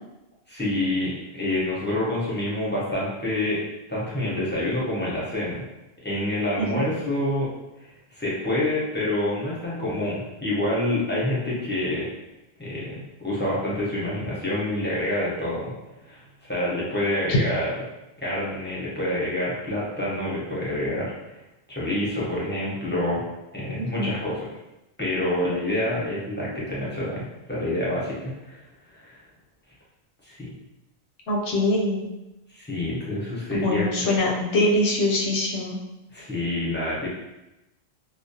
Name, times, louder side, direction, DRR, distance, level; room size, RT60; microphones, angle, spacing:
voice 1, 0.5-3.6 3.9-5.6 6.0-7.5 7.8-12.1 12.6-15.7 16.0-17.7 18.2-21.3 21.7-23.2 23.5-24.6 25.0-28.6 28.9-29.2 30.2-30.5 32.5-34.2 36.1-37.1, left 1 dB, 15° left, -8 dB, 0.4 m, -27 dB
voice 2, 23.8-24.1 31.3-32.0 33.5-35.8, left 1 dB, 85° left, -1 dB, 0.9 m, -23 dB
2.3 x 2.0 x 2.6 m, 0.96 s
omnidirectional pair, 1.1 m